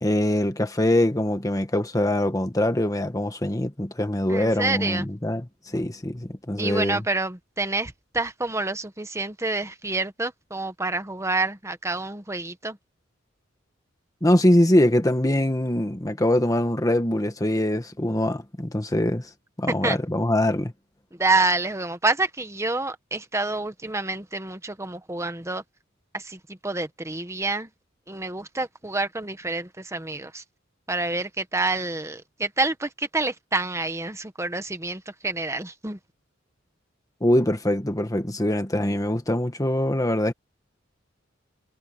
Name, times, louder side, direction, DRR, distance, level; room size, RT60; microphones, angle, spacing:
voice 1, 0.0-7.0 14.2-19.3 19.6-20.7 37.2-40.3, left 1 dB, 20° left, 1.5 m, -23 dB
voice 2, 4.3-5.1 6.6-12.8 19.8-20.0 21.2-25.6 26.1-27.7 28.1-30.4 30.9-36.0, right 3 dB, 15° right, 1.2 m, -28 dB
head